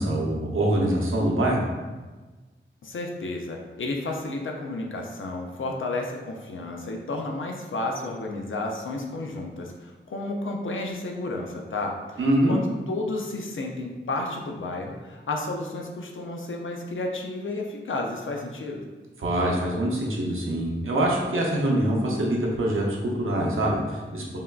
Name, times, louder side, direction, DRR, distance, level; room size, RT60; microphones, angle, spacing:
voice 1, 0.0-1.6 12.2-12.6 19.2-24.2, right 1 dB, 80° right, -2 dB, 0.6 m, -24 dB
voice 2, 2.8-12.2 12.5-18.9, left 2 dB, 75° left, 1 dB, 0.4 m, -32 dB
3.5 x 2.2 x 2.3 m, 1.3 s
wide cardioid pair, 70°, 21 cm